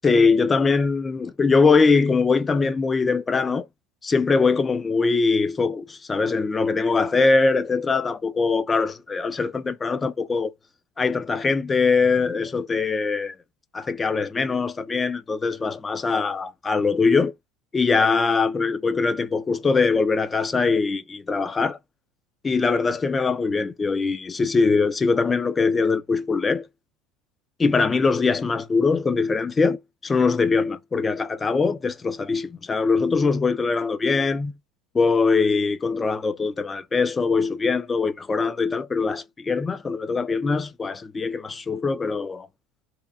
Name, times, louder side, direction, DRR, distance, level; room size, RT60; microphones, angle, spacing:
voice 1, 0.0-3.6 4.0-10.5 11.0-13.4 13.7-17.3 17.7-21.8 22.4-26.7 27.6-34.5 34.9-42.5, left 4 dB, 20° left, 0.3 m, -22 dB
2.8 x 2.2 x 2.4 m
supercardioid pair, 100°, 0 cm